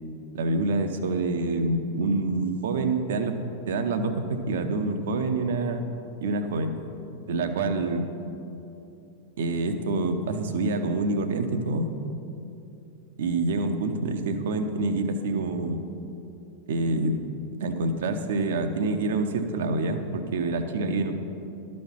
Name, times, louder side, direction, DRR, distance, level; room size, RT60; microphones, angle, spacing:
voice 1, 0.3-3.4 3.7-5.9 6.2-6.8 7.3-8.1 9.4-11.9 13.2-15.8 16.7-17.2 17.6-21.1, right 2 dB, 60° right, 8 dB, 0.6 m, -26 dB
12.0 x 4.3 x 5.6 m, 2.8 s
figure-of-eight pair, 90°, 0 cm